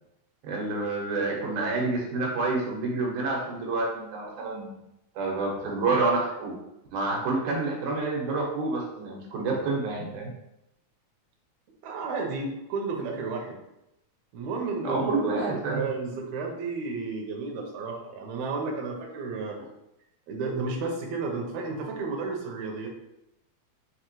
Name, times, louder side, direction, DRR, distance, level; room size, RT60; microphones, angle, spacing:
voice 1, 0.4-4.8 5.2-6.6 6.9-10.3 14.8-15.8, right 3 dB, 90° right, -2 dB, 2.5 m, -28 dB
voice 2, 11.8-13.6 14.3-15.1 15.5-19.6 20.3-22.9, right 3 dB, 75° right, 1 dB, 1.9 m, -32 dB
6.0 x 2.9 x 3.0 m, 0.86 s
omnidirectional pair, 3.5 m